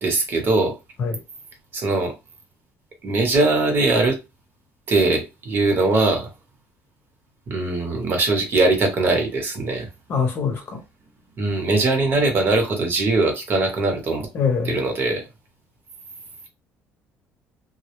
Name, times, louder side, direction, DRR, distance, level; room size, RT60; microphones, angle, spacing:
voice 1, 0.0-0.8 1.7-2.1 3.0-4.2 4.9-6.3 7.5-9.9 11.4-14.3 14.6-15.2, right 2 dB, 40° right, 0.8 m, -21 dB
voice 2, 10.1-10.8 14.3-14.8, left 5 dB, 45° left, 0.7 m, -23 dB
2.1 x 2.0 x 2.9 m
cardioid pair, 130°, 5 cm